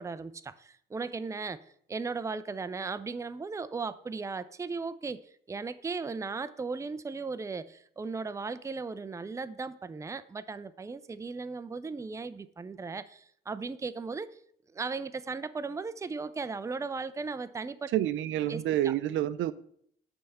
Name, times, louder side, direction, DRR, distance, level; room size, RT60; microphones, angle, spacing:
voice 1, 0.0-1.6 1.9-5.2 5.5-14.3 14.7-17.9 18.5-18.9, right 4 dB, 15° right, 0.4 m, -37 dB
voice 2, 17.9-19.5, right 12 dB, 75° right, 0.5 m, -28 dB
8.9 x 3.5 x 6.7 m
cardioid pair, 90°, 20 cm